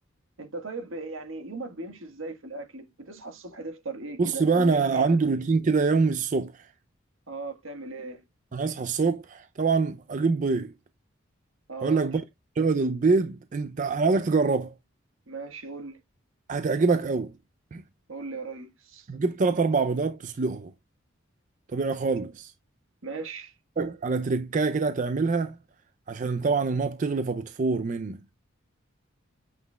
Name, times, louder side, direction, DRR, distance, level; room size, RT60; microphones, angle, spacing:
voice 1, 0.4-5.2 7.3-8.3 11.7-12.0 15.3-16.0 18.1-19.1 23.0-23.5, right 3 dB, 75° right, 1.4 m, -38 dB
voice 2, 4.2-6.7 8.5-10.7 11.8-12.2 12.6-14.7 16.5-17.3 17.7-17.8 19.1-20.7 21.7-22.5 23.8-25.6 26.1-28.2, right 4 dB, 40° right, 0.4 m, -25 dB
8.0 x 5.6 x 2.2 m
head